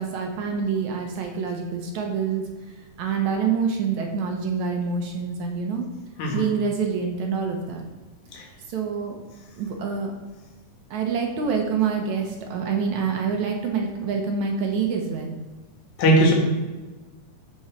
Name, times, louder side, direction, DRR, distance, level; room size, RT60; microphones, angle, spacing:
voice 1, 0.0-2.4 3.0-5.8 6.3-7.8 8.7-9.2 9.6-10.1 10.9-15.3, right 6 dB, 70° right, 2 dB, 2.2 m, -26 dB
voice 2, 6.2-6.5 8.3-8.4 16.0-16.3, right 1 dB, 70° left, -1 dB, 3.0 m, -19 dB
12.5 x 4.7 x 4.4 m, 1.2 s
omnidirectional pair, 3.7 m